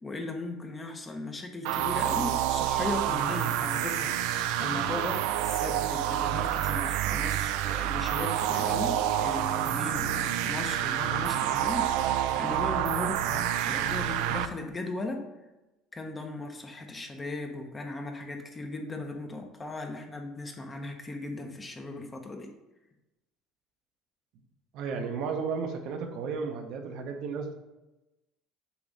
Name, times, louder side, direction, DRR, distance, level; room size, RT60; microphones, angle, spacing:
voice 1, 0.0-15.3 15.9-22.5, left 2 dB, 15° left, 3 dB, 0.8 m, -37 dB
sound 1, 1.6-14.5, right 11 dB, 80° right, 0.4 m, -28 dB
voice 2, 24.7-27.5, right 5 dB, 60° right, 4 dB, 0.8 m, -33 dB
7.1 x 3.1 x 5.1 m, 1.0 s
cardioid pair, 150°, 0 cm